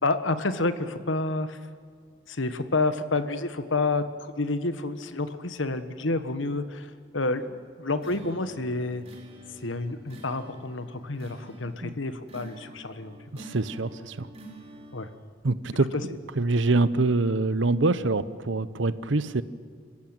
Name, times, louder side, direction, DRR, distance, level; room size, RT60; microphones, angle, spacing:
voice 1, 0.0-1.6 2.3-9.0 9.6-13.2 14.9-15.1 15.9-16.0, left 2 dB, 85° left, 11 dB, 1.4 m, -29 dB
sound 1, 8.0-15.2, right 1 dB, 30° right, 3.6 m, -48 dB
voice 2, 13.3-14.3 15.4-19.4, right 3 dB, 80° right, 15 dB, 0.9 m, -25 dB
27.0 x 15.5 x 9.0 m, 2.1 s
head